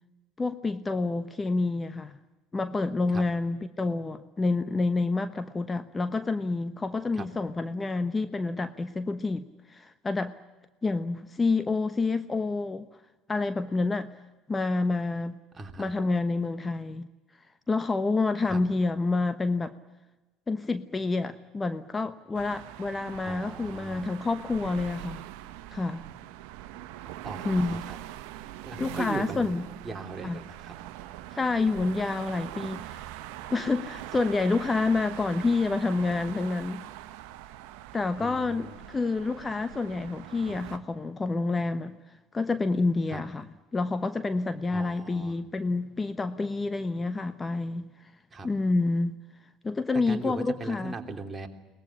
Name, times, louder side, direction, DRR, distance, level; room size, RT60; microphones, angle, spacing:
voice 1, 0.4-2.2 2.5-10.3 10.8-12.9 13.3-14.1 14.5-15.4 15.8-17.1 17.7-19.7 20.5-25.2 25.7-26.0 27.4-27.8 28.8-29.7 30.2-30.4 31.3-33.0 33.5-36.8 37.9-42.0 42.3-43.5 43.7-47.8 48.4-49.2 49.6-50.9, left 3 dB, 20° left, 11 dB, 1.1 m, -28 dB
voice 2, 15.5-15.9 18.5-18.6 23.2-24.1 27.2-28.0 28.6-29.6 29.8-30.7 38.2-38.8 43.1-43.2 44.7-45.4 48.3-48.5 50.1-51.5, right 3 dB, 25° right, 4 dB, 3.2 m, -39 dB
sound 1, 22.3-40.8, right 13 dB, 70° right, 1.3 m, -42 dB
22.5 x 20.0 x 10.0 m, 1.1 s
hypercardioid pair, 70°, 0 cm